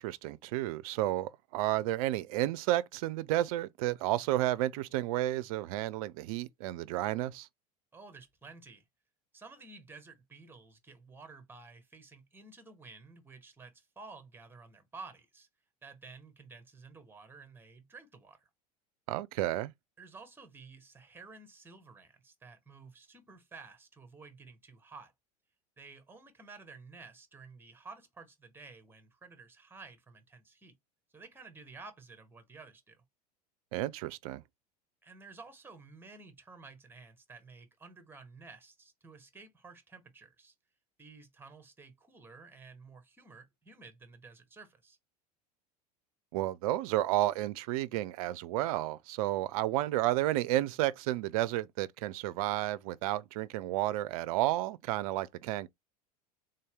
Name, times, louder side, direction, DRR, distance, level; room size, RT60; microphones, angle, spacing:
voice 1, 0.0-7.5 19.1-19.7 33.7-34.4 46.3-55.7, right 15 dB, 60° right, 0.5 m, -31 dB
voice 2, 7.9-8.8 9.3-15.5 15.8-18.5 20.0-25.1 25.8-30.7 31.1-33.0 35.0-40.5 41.0-45.0, right 4 dB, 10° right, 1.2 m, -52 dB
3.8 x 2.7 x 3.5 m
figure-of-eight pair, 80°, 20 cm